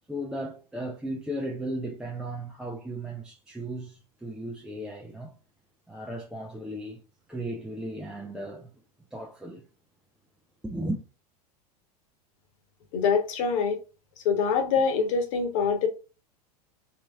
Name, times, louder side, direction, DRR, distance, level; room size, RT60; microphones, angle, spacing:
voice 1, 0.1-5.3 5.9-7.0 7.3-8.7 9.1-9.6 10.6-11.0, right 1 dB, 5° right, 0.6 m, -35 dB
voice 2, 12.9-13.8 14.2-15.9, left 6 dB, 50° left, 1.3 m, -24 dB
3.9 x 3.1 x 3.5 m
figure-of-eight pair, 90°, 20 cm